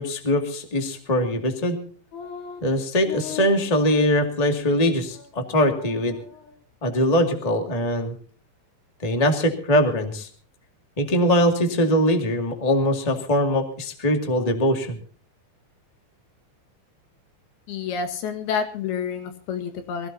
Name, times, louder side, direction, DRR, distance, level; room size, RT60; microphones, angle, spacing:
voice 1, 0.0-1.8 2.6-6.2 6.8-8.1 9.0-10.3 11.0-15.0, equal, 15° left, 5 dB, 1.4 m, -22 dB
sound 1, 2.1-2.6 3.0-4.2 4.6-4.7 5.1-5.4 5.7-6.5, left 6 dB, 50° left, 3.3 m, -39 dB
voice 2, 17.7-20.1, left 6 dB, 85° left, 6 dB, 3.5 m, -29 dB
24.0 x 16.5 x 2.7 m, 0.43 s
omnidirectional pair, 4.3 m